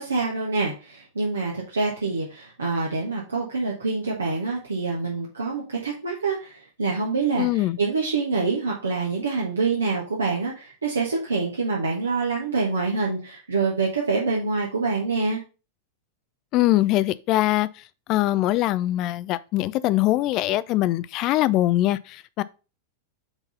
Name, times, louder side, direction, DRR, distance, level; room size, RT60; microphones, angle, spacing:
voice 1, 0.0-15.4, right 4 dB, 75° right, 1.4 m, -26 dB
voice 2, 7.4-7.8 16.5-22.4, left 16 dB, 40° left, 0.4 m, -22 dB
5.9 x 4.0 x 5.4 m
figure-of-eight pair, 90°, 0 cm